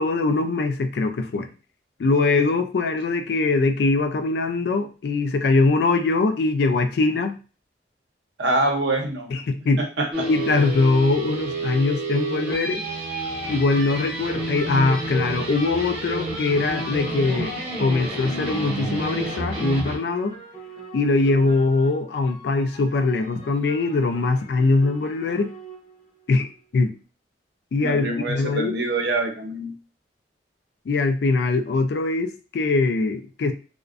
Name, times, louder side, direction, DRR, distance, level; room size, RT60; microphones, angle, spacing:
voice 1, 0.0-1.5 2.0-7.3 9.3-9.8 10.3-12.8 13.5-17.5 17.8-20.3 20.9-25.5 26.3-26.9 27.7-28.7 30.9-33.5, left 3 dB, 60° left, 7 dB, 0.3 m, -22 dB
voice 2, 8.4-9.3 10.0-10.1 27.8-29.7, right 2 dB, 70° right, 3 dB, 0.6 m, -24 dB
sound 1, 10.1-20.0, right 1 dB, 35° right, 0.7 m, -29 dB
sound 2, 19.4-26.8, right 3 dB, 40° left, 0.7 m, -44 dB
2.5 x 2.1 x 2.4 m, 0.35 s
head